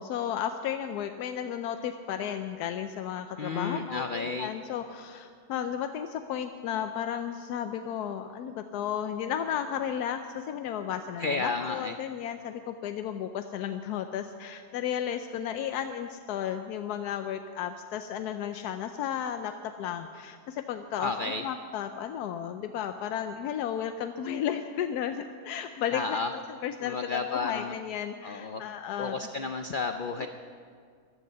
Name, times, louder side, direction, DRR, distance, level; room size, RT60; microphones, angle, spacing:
voice 1, 0.0-21.1 21.4-26.2 26.6-29.2 30.2-30.3, left 9 dB, 90° left, 8 dB, 1.2 m, -33 dB
voice 2, 3.4-4.5 11.2-11.9 21.0-21.4 25.9-26.3 26.8-27.8 28.2-28.6 29.0-30.3, left 4 dB, 65° left, 7 dB, 0.5 m, -32 dB
14.5 x 11.5 x 6.8 m, 2.1 s
omnidirectional pair, 1.6 m